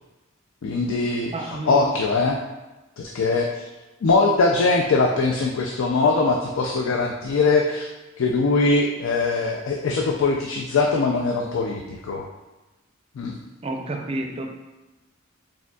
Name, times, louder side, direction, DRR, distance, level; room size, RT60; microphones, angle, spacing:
voice 1, 0.6-2.4 3.0-3.6 4.0-7.9 8.2-12.3 13.2-13.4, left 3 dB, 70° left, 1 dB, 0.4 m, -22 dB
voice 2, 1.3-1.9 13.6-14.5, right 2 dB, 30° right, 2 dB, 0.5 m, -30 dB
4.8 x 3.6 x 2.3 m, 1.1 s
head